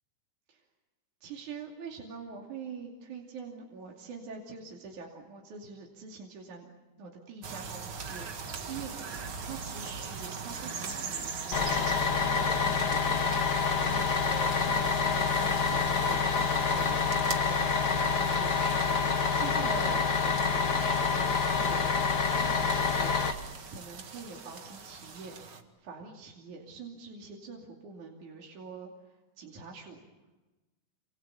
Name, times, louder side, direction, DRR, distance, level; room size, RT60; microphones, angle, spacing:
voice 1, 1.2-6.7 7.0-8.9 9.4-11.8 12.2-17.7 18.0-18.9 19.3-25.4 25.8-30.0, right 5 dB, 75° right, -1 dB, 4.2 m, -45 dB
sound 1, 7.4-25.6, right 5 dB, 45° right, 2.4 m, -42 dB
Bus, 11.5-23.3, left 5 dB, 40° left, 2.1 m, -27 dB
28.0 x 28.0 x 7.1 m, 1.1 s
omnidirectional pair, 3.5 m